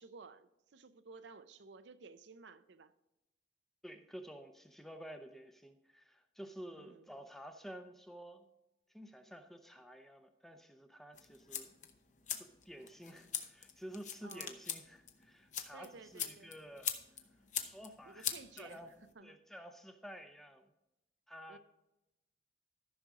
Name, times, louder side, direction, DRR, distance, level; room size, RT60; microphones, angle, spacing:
voice 1, 0.0-2.9 6.8-7.1 14.2-14.6 15.7-16.5 18.1-18.8 19.2-19.4 21.5-21.6, right 4 dB, 75° right, 0.6 m, -54 dB
voice 2, 3.8-8.5 8.9-11.8 12.3-16.9 17.6-18.3 18.6-18.9 19.2-20.7 21.3-21.6, equal, ahead, 0.6 m, -51 dB
sound 1, 11.1-19.1, left 9 dB, 40° left, 0.8 m, -43 dB
13.5 x 6.1 x 3.7 m
head